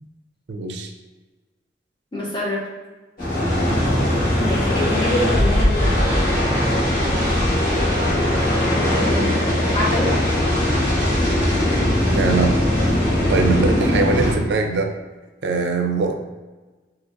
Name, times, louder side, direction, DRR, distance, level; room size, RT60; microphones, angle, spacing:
voice 1, 0.5-0.9 12.1-12.6 13.3-14.9 15.4-16.1, right 3 dB, 75° right, 4 dB, 0.5 m, -21 dB
voice 2, 2.1-2.7 4.4-6.0 8.7-10.1, left 1 dB, 25° left, -4 dB, 0.9 m, -26 dB
sound 1, 3.2-14.3, left 1 dB, 50° left, 1.5 m, -19 dB
3.8 x 2.8 x 2.6 m, 1.2 s
head